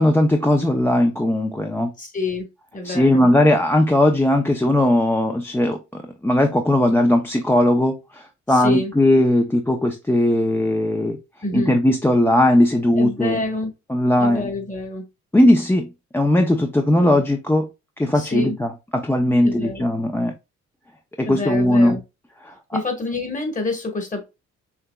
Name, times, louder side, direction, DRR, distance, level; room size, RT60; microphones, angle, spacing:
voice 1, 0.0-1.9 2.8-11.2 11.5-13.4 13.9-14.5 15.3-15.9 16.1-17.7 18.0-20.3 21.2-22.0 22.4-22.5, left 1 dB, 10° left, 0.5 m, -18 dB
voice 2, 2.0-2.5 2.7-3.3 8.5-8.9 11.4-11.8 13.0-13.7 14.2-15.1 18.1-18.6 19.4-19.8 21.3-22.0 22.7-24.3, left 2 dB, 25° left, 1.4 m, -27 dB
5.8 x 2.9 x 2.2 m
cardioid pair, 90°, 30 cm